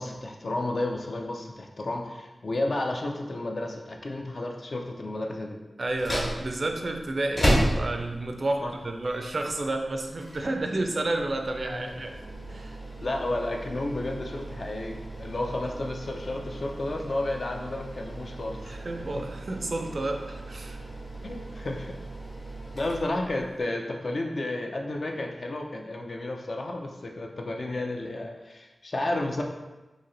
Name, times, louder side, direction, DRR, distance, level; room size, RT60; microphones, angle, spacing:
voice 1, 0.0-5.6 8.6-8.7 11.7-11.8 13.0-18.8 19.1-19.3 21.2-22.0 22.7-29.4, left 2 dB, 55° left, 2 dB, 0.4 m, -32 dB
sound 1, 5.8-23.6, equal, 40° left, 0.9 m, -34 dB
voice 2, 5.8-12.1 12.5-12.8 18.6-20.8, right 2 dB, 55° right, 3 dB, 0.4 m, -31 dB
3.1 x 2.8 x 3.9 m, 1.1 s
wide cardioid pair, 100°, 0 cm